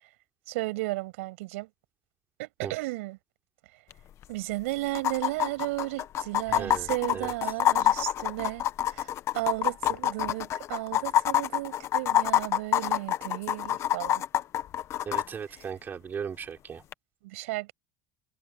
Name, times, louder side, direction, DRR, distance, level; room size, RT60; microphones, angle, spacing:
voice 1, 0.5-1.7 2.4-3.2 4.3-14.2 17.2-17.7, right 21 dB, 85° right, 7.4 m, -34 dB
sound 1, 3.9-4.0 4.2-4.3 4.9-15.2 16.9-17.0, left 11 dB, 40° left, 1.1 m, -26 dB
voice 2, 6.5-7.3 15.1-16.8, right 7 dB, 30° right, 5.3 m, -37 dB
supercardioid pair, 130°, 7 cm